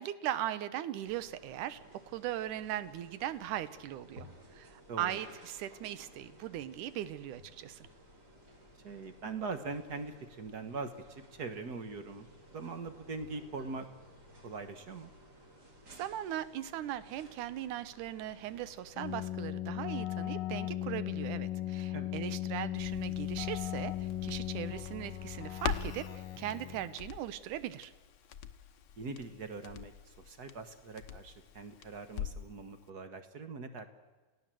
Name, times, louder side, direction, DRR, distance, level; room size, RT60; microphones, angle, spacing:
voice 1, 0.0-1.8 2.1-4.3 4.5-7.9 16.0-23.9 24.2-26.1 26.4-27.9, right 12 dB, 80° right, 15 dB, 2.4 m, -39 dB
sound 1, 1.0-19.3, equal, 30° right, 4.3 m, -57 dB
voice 2, 4.9-5.2 8.8-12.3 12.5-13.9 14.4-15.1 21.9-22.1 29.0-33.9, right 4 dB, 50° right, 9 dB, 1.2 m, -42 dB
Keyboard (musical), 19.0-27.1, left 13 dB, 55° left, 2.0 m, -37 dB
Crackle, 22.8-32.6 32.9-33.0, left 9 dB, 85° left, 0.9 m, -44 dB
29.0 x 17.0 x 7.7 m, 1.2 s
omnidirectional pair, 3.6 m